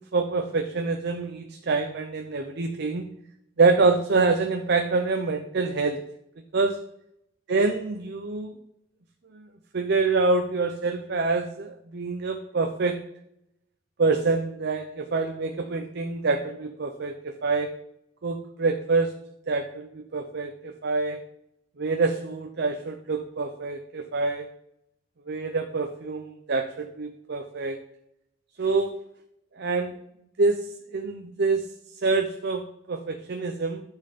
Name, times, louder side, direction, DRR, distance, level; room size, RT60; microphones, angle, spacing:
voice 1, 0.1-3.0 3.6-6.0 6.5-6.8 7.5-8.5 9.3-9.5 9.7-13.0 14.0-17.7 18.2-19.1 19.5-21.2 21.8-24.5 25.3-27.8 28.6-29.0 29.6-29.9 30.4-30.7 30.9-31.7 32.0-33.8, right 3 dB, 60° right, 5 dB, 0.7 m, -26 dB
10.5 x 4.6 x 5.2 m, 0.80 s
head